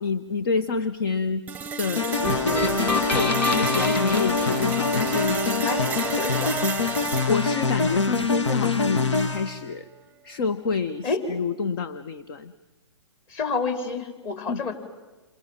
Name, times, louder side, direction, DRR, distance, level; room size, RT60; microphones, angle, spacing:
voice 1, 0.0-1.4 1.8-5.4 7.3-9.9 10.2-12.5 14.5-14.6, left 5 dB, 50° left, 14 dB, 1.3 m, -28 dB
sound 1, 1.5-9.5, right 7 dB, 10° right, 0.9 m, -34 dB
sound 2, 2.0-9.6, left 4 dB, 75° left, 1.9 m, -24 dB
sound 3, 2.2-5.5, left 2 dB, 10° left, 2.2 m, -29 dB
voice 2, 5.6-6.6 11.0-11.2 13.3-14.7, left 4 dB, 30° left, 7 dB, 4.7 m, -29 dB
29.0 x 27.0 x 7.5 m, 1.2 s
figure-of-eight pair, 125°, 15 cm